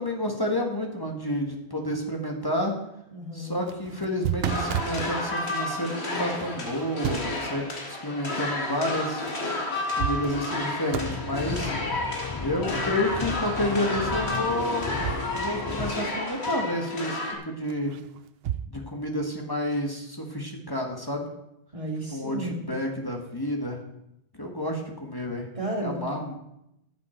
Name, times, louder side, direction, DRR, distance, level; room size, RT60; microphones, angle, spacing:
voice 1, 0.0-2.7 3.3-9.2 10.0-11.7 12.4-14.9 15.4-17.9 18.7-21.3 22.1-23.8 24.3-25.5 25.8-26.3, left 1 dB, 20° left, 2 dB, 1.5 m, -30 dB
voice 2, 3.1-3.6 21.7-22.6 25.5-26.0, right 1 dB, 30° right, -2 dB, 2.8 m, -32 dB
sound 1, 3.5-5.1 6.7-7.5 9.3-9.4 9.7-10.6 10.9-11.2 14.3-15.5 15.7-15.8 17.7-18.7, right 10 dB, 70° right, 0.8 m, -32 dB
sound 2, 4.5-17.3, left 2 dB, 85° left, 2.2 m, -31 dB
sound 3, 10.9-16.0, left 5 dB, 40° left, 0.3 m, -34 dB
14.0 x 7.7 x 4.5 m, 0.82 s
omnidirectional pair, 1.1 m